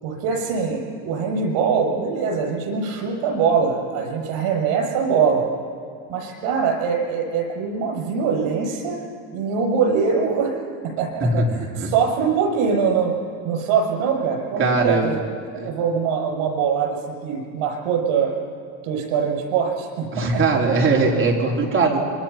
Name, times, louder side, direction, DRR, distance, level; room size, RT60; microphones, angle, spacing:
voice 1, 0.0-5.4 6.1-9.0 9.3-10.6 11.0-13.1 13.4-15.2 15.6-18.3 18.8-20.4, right 6 dB, 75° right, 0 dB, 7.7 m, -23 dB
voice 2, 14.6-15.1 15.5-15.7 20.1-22.0, right 3 dB, 25° right, -1 dB, 3.9 m, -20 dB
26.5 x 24.0 x 5.9 m, 2.3 s
cardioid pair, 140°, 48 cm